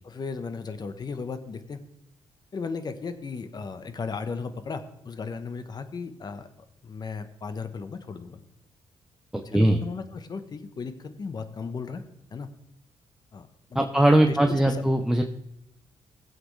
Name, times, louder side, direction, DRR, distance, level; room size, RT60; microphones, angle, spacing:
voice 1, 0.0-1.8 2.5-6.5 6.8-8.4 9.3-12.0 12.3-12.5 13.3-13.9 14.3-14.8, left 5 dB, 40° left, 10 dB, 1.0 m, -36 dB
voice 2, 9.3-9.8 13.7-15.2, right 1 dB, 5° right, 5 dB, 0.7 m, -20 dB
19.0 x 7.8 x 3.3 m, 0.84 s
cardioid pair, 115°, 11 cm